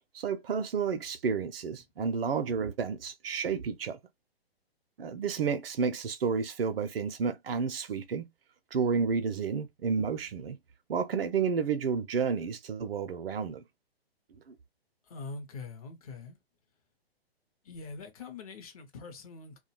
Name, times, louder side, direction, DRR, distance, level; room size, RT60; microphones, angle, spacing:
voice 1, 0.1-4.0 5.0-8.3 8.7-10.6 10.9-13.6 14.5-14.6, right 5 dB, 65° right, 0.5 m, -31 dB
voice 2, 15.0-16.4 17.6-19.6, left 4 dB, 35° left, 0.6 m, -43 dB
2.2 x 2.2 x 2.9 m
figure-of-eight pair, 120°, 31 cm